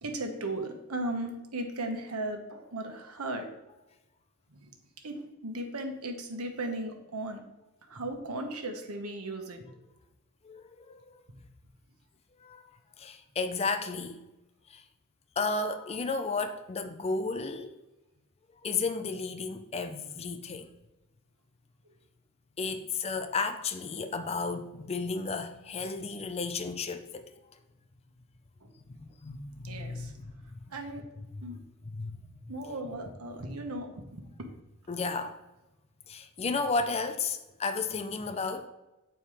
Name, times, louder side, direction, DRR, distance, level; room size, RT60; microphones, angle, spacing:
voice 1, 0.0-3.5 4.5-4.7 5.0-7.4 7.8-9.7 28.6-28.7 29.6-30.1 30.7-31.0 31.4-31.6 32.5-34.2, right 1 dB, 80° right, 1.2 m, -36 dB
voice 2, 10.4-11.2 12.4-12.7 13.0-14.2 14.7-14.8 15.4-17.7 18.6-20.7 22.6-27.3 28.9-30.1 31.9-32.2 34.9-35.4 36.1-38.7, left 4 dB, 30° left, 0.4 m, -33 dB
7.4 x 4.6 x 4.9 m
head